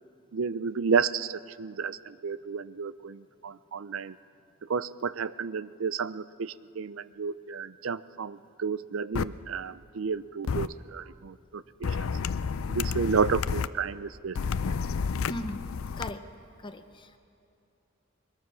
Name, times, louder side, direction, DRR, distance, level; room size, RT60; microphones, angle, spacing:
voice 1, 0.3-4.2 4.7-12.1 12.7-14.4 14.6-14.7, right 5 dB, 75° right, 17 dB, 0.5 m, -31 dB
sound 1, 9.1-9.2 10.5-10.7 11.8-13.7 14.3-16.1, left 5 dB, 90° left, 0.5 m, -30 dB
voice 2, 15.3-15.7 16.0-16.2 16.6-17.2, left 1 dB, 25° left, 9 dB, 0.7 m, -37 dB
22.0 x 21.0 x 6.2 m, 2.7 s
head